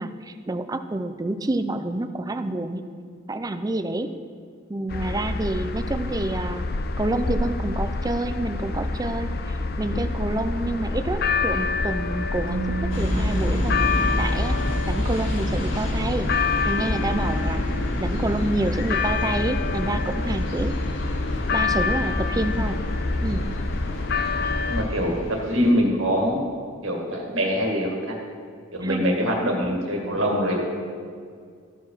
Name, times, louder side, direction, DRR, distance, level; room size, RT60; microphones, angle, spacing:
voice 1, 0.0-2.8 3.3-4.1 4.7-6.7 7.0-14.6 14.9-16.3 16.6-17.6 18.0-20.8 21.5-22.8 23.2-23.6 28.8-29.0, right 2 dB, 20° right, 9 dB, 0.4 m, -28 dB
sound 1, 4.9-24.8, left 3 dB, 50° left, 0.5 m, -27 dB
Keyboard (musical), 12.5-15.2, right 4 dB, 90° right, 0.8 m, -33 dB
sound 2, 12.9-25.7, left 1 dB, 70° left, 1.9 m, -30 dB
voice 2, 24.7-26.4 26.8-28.2 28.7-30.5, equal, 75° right, -1 dB, 2.0 m, -24 dB
14.5 x 4.9 x 5.7 m, 2.1 s
head